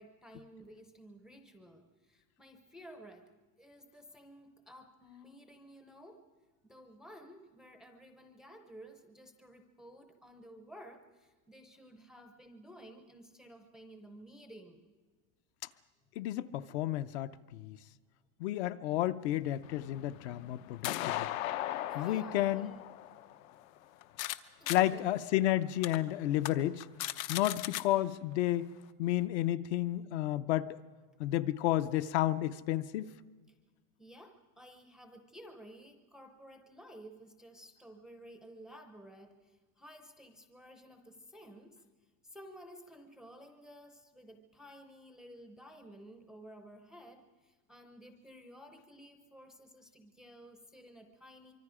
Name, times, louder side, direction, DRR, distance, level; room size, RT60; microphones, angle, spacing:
voice 1, 0.0-3.3 3.6-6.2 6.7-14.9 21.8-22.8 24.6-25.0 34.0-41.8 42.3-51.5, equal, ahead, 5 dB, 0.5 m, -54 dB
voice 2, 16.2-17.8 18.4-21.3 21.9-22.7 24.7-26.8 27.3-28.7 29.0-30.8 31.2-33.1, left 14 dB, 55° left, 12 dB, 0.7 m, -31 dB
sound 1, 19.6-24.4 24.7-24.8 25.3-25.4 25.8-26.0 26.4-26.5 26.8-27.8, left 14 dB, 75° left, 1.0 m, -38 dB
24.5 x 24.0 x 4.9 m, 1.3 s
supercardioid pair, 180°, 41 cm